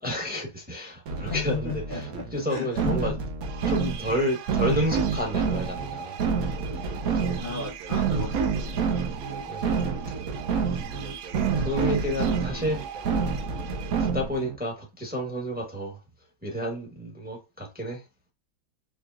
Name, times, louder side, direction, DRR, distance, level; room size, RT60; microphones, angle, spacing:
voice 1, 0.0-1.8 2.3-3.1 3.6-6.2 7.0-7.4 9.5-9.9 11.6-12.8 14.1-16.0 16.4-18.0, left 1 dB, 5° right, 0.7 m, -30 dB
sound 1, 1.1-14.6, right 5 dB, 60° right, 1.0 m, -28 dB
voice 2, 1.2-3.2 7.4-8.8, left 5 dB, 70° left, 0.5 m, -35 dB
sound 2, 3.4-14.1, right 9 dB, 80° right, 1.3 m, -41 dB
4.6 x 3.0 x 2.4 m
omnidirectional pair, 2.2 m